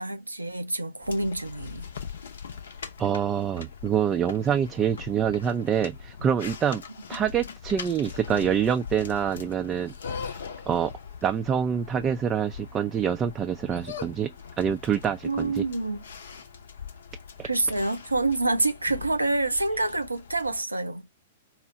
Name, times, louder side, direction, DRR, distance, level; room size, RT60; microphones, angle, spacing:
voice 1, 0.0-1.9 15.2-16.0 17.4-21.0, right 2 dB, 85° right, 0.5 m, -27 dB
sound 1, 1.0-20.6, left 6 dB, 65° left, 0.6 m, -41 dB
voice 2, 3.0-6.8 7.1-9.9 10.7-10.9 11.2-14.3 14.6-15.6 17.4-17.5, right 8 dB, 20° right, 0.3 m, -26 dB
4.3 x 2.0 x 2.5 m
figure-of-eight pair, 105°, 0 cm